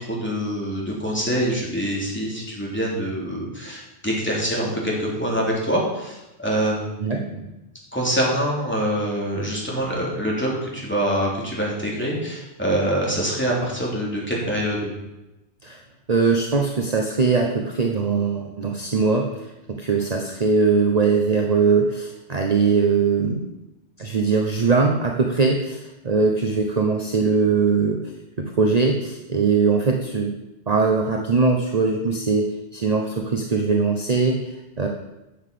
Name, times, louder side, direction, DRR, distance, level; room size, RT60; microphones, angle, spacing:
voice 1, 0.0-7.4 7.9-14.9, equal, 10° left, -4 dB, 3.4 m, -25 dB
voice 2, 16.1-23.4 24.0-28.1 28.4-30.3 30.7-34.9, right 4 dB, 35° right, 2 dB, 1.0 m, -21 dB
10.0 x 7.2 x 7.6 m, 0.97 s
omnidirectional pair, 1.2 m